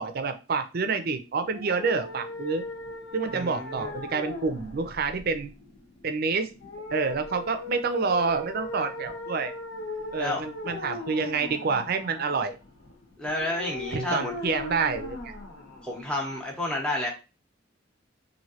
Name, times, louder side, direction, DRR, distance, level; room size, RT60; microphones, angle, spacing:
voice 1, 0.0-2.6 3.1-5.5 6.0-6.5 6.9-9.5 10.1-12.6 13.9-15.3, right 4 dB, 50° right, 8 dB, 0.5 m, -28 dB
sound 1, 1.5-16.5, left 2 dB, 65° left, 1.1 m, -39 dB
voice 2, 3.3-3.9 10.2-10.4 13.2-14.3 15.8-17.1, left 1 dB, 5° left, -2 dB, 0.8 m, -30 dB
3.0 x 2.7 x 2.8 m, 0.29 s
head